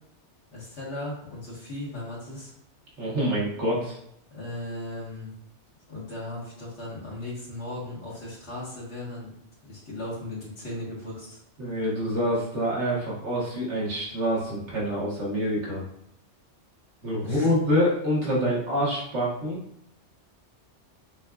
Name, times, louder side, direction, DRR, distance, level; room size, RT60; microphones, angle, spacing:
voice 1, 0.5-2.5 4.3-5.3 5.9-9.3 9.6-11.4 17.2-17.5, left 2 dB, 75° left, -6 dB, 1.8 m, -37 dB
voice 2, 3.0-4.0 11.6-15.8 17.0-19.6, equal, 80° right, -5 dB, 1.6 m, -26 dB
6.1 x 2.4 x 2.3 m, 0.74 s
omnidirectional pair, 1.2 m